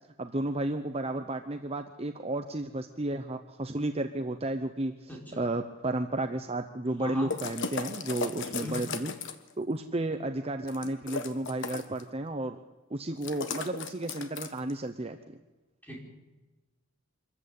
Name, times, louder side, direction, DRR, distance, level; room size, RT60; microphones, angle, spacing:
voice 1, 0.2-9.1 9.6-12.6 12.9-15.2, right 2 dB, 30° right, 7 dB, 0.9 m, -32 dB
voice 2, 5.1-5.5 7.0-7.3 8.4-8.8 15.8-16.0, left 1 dB, 10° left, -1 dB, 5.1 m, -40 dB
sound 1, 7.3-9.5 10.7-12.0 13.2-14.7, left 4 dB, 55° left, 1.5 m, -36 dB
25.5 x 14.5 x 8.5 m, 1.1 s
head